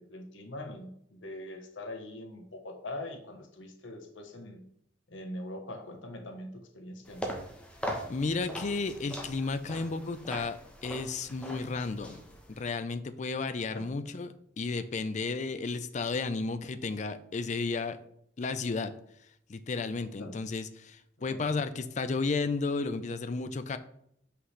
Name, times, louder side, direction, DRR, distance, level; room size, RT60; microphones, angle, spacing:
voice 1, 0.0-4.6 5.1-7.4 13.7-14.0 20.2-20.4 21.3-21.4, left 1 dB, 85° left, 4 dB, 1.1 m, -42 dB
sound 1, 7.0-12.7, equal, 5° left, 0.9 m, -41 dB
voice 2, 8.1-12.2 12.5-18.0 18.4-18.9 19.5-23.8, left 4 dB, 40° left, 11 dB, 0.4 m, -33 dB
5.7 x 5.6 x 3.3 m, 0.72 s
head